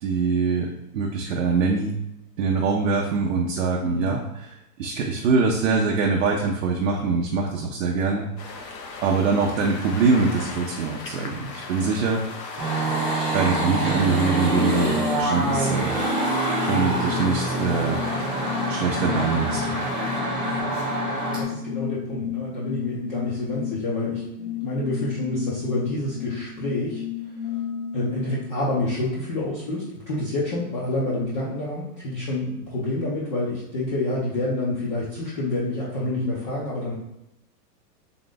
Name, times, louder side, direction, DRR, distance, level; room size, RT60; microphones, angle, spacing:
voice 1, 0.0-2.0 2.4-4.5 4.8-8.6 9.0-12.5 13.3-15.9 16.7-18.0 18.7-19.8, right 4 dB, 55° right, 0 dB, 0.6 m, -23 dB
voice 2, 3.8-4.2 16.7-17.0 21.3-27.0 27.9-36.9, left 2 dB, 30° left, -7 dB, 0.6 m, -28 dB
sound 1, 8.4-20.2, left 4 dB, 85° left, 0.9 m, -38 dB
sound 2, 12.6-21.4, right 2 dB, 5° right, 0.4 m, -26 dB
sound 3, 14.5-28.9, left 10 dB, 55° left, 1.1 m, -33 dB
3.7 x 2.4 x 3.8 m, 0.86 s
hypercardioid pair, 155°, 49 cm